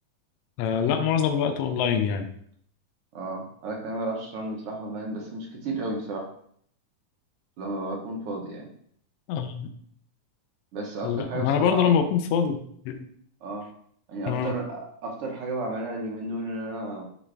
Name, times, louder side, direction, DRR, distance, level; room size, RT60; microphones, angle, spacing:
voice 1, 0.6-2.3 9.3-9.7 11.0-12.6 12.8-13.0 14.3-14.5, left 7 dB, 80° left, 7 dB, 1.4 m, -24 dB
voice 2, 3.1-6.3 7.6-8.7 10.7-12.0 13.4-13.7 14.1-17.0, right 2 dB, 60° right, 0 dB, 1.6 m, -33 dB
9.6 x 3.4 x 3.4 m, 0.64 s
omnidirectional pair, 3.5 m